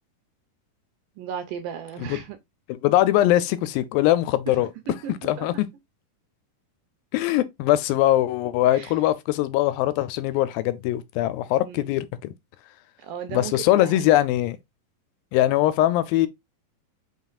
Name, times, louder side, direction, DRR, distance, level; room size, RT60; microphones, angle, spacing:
voice 1, 1.2-2.4 4.5-5.6 8.7-8.9 11.6-11.9 13.0-14.0, right 9 dB, 80° right, 2.0 m, -36 dB
voice 2, 2.7-4.7 5.1-5.7 7.1-12.3 13.3-14.6 15.3-16.3, left 14 dB, 85° left, 2.2 m, -22 dB
5.5 x 4.0 x 2.3 m
omnidirectional pair, 4.2 m